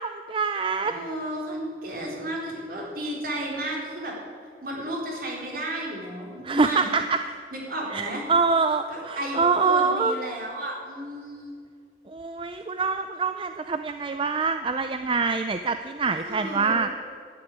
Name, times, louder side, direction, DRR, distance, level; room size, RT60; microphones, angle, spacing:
voice 1, 0.0-0.9 6.4-7.2 7.9-10.2 12.1-16.9, right 4 dB, 30° right, 9 dB, 0.4 m, -25 dB
voice 2, 0.8-4.1 4.6-6.9 7.5-8.2 8.9-11.5 16.2-16.8, right 1 dB, 55° right, -2 dB, 3.8 m, -33 dB
12.0 x 10.0 x 9.0 m, 2.2 s
head